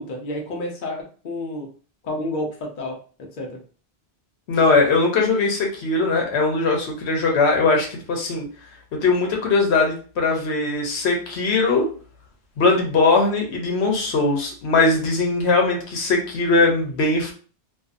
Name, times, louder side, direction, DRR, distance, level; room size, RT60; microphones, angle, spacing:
voice 1, 0.0-1.7 2.0-3.0 3.4-3.6, left 1 dB, 55° left, 0 dB, 0.8 m, -30 dB
voice 2, 4.5-8.4 9.0-11.9 12.6-17.3, left 3 dB, 85° left, 1 dB, 1.0 m, -20 dB
2.6 x 2.3 x 2.5 m, 0.39 s
omnidirectional pair, 1.1 m